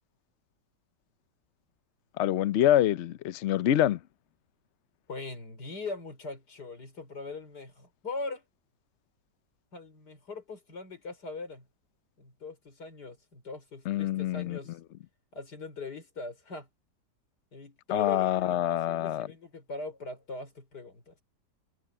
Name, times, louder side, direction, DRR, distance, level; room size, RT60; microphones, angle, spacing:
voice 1, 2.2-4.0 13.9-14.6 17.9-19.3, left 12 dB, 80° left, 0.6 m, -26 dB
voice 2, 5.1-8.4 9.7-11.7 12.2-14.8 15.3-16.7 17.5-21.2, left 3 dB, 60° left, 5.1 m, -41 dB
omnidirectional pair, 2.0 m